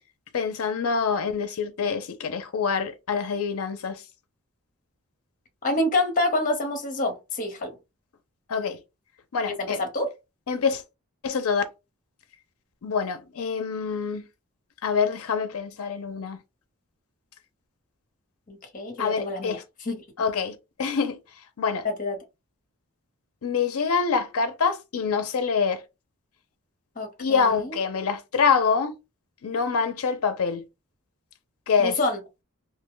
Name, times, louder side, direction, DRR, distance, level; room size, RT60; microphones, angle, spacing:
voice 1, 0.3-4.0 8.5-8.8 9.3-9.8 10.5-10.8 11.2-11.6 12.8-14.3 14.8-16.4 19.0-19.6 20.2-21.2 21.6-21.9 23.4-25.8 27.2-28.9 29.4-30.6 31.7-32.0, left 5 dB, 80° left, 0.5 m, -25 dB
voice 2, 5.6-7.7 9.6-10.1 18.5-20.0 21.8-22.2 27.0-27.7 31.8-32.2, left 2 dB, 35° left, 0.9 m, -27 dB
2.8 x 2.1 x 3.6 m
head